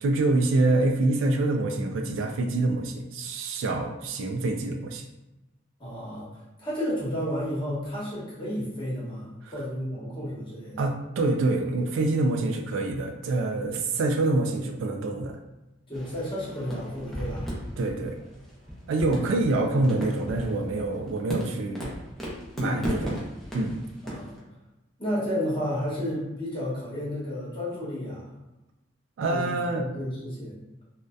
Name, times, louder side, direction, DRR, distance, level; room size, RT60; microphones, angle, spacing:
voice 1, 0.0-5.1 10.8-15.4 17.8-18.2 18.9-21.9 22.6-23.2 23.5-23.8 29.2-29.8, right 2 dB, 70° right, 3 dB, 0.3 m, -26 dB
voice 2, 5.8-6.3 6.6-10.8 15.9-17.5 19.0-19.6 22.5-22.9 24.0-24.3 25.0-28.3 29.3-30.5, equal, 25° left, -8 dB, 1.0 m, -32 dB
sound 1, 15.9-24.4, equal, ahead, 0.5 m, -36 dB
2.6 x 2.1 x 2.2 m, 1.0 s
head